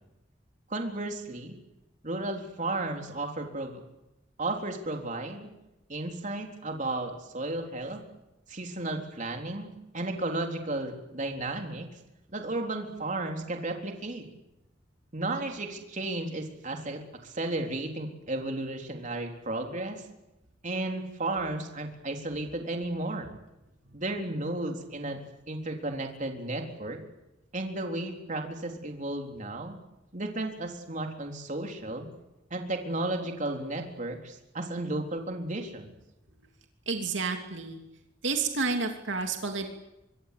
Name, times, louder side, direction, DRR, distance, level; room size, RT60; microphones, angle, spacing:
voice 1, 0.7-1.5 2.0-3.8 4.4-5.5 5.9-8.0 8.5-11.9 12.3-14.3 15.1-20.0 20.6-23.3 23.9-25.2 25.5-27.0 27.5-29.8 30.1-32.1 32.5-35.9, right 2 dB, 40° right, 3 dB, 3.8 m, -33 dB
voice 2, 36.9-37.8 38.2-39.7, right 4 dB, 75° right, 4 dB, 3.0 m, -30 dB
24.5 x 24.0 x 8.6 m, 0.94 s
head